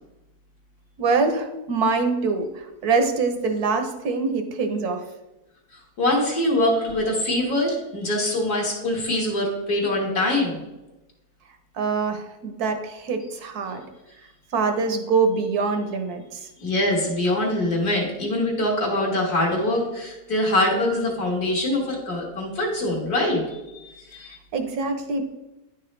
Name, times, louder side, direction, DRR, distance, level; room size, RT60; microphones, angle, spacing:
voice 1, 1.0-5.0 11.7-13.8 14.5-16.5 24.5-25.2, right 4 dB, 70° right, 7 dB, 1.3 m, -24 dB
voice 2, 5.7-10.6 16.6-24.4, left 1 dB, 65° left, -2 dB, 2.2 m, -24 dB
10.0 x 5.8 x 3.2 m, 0.99 s
omnidirectional pair, 1.7 m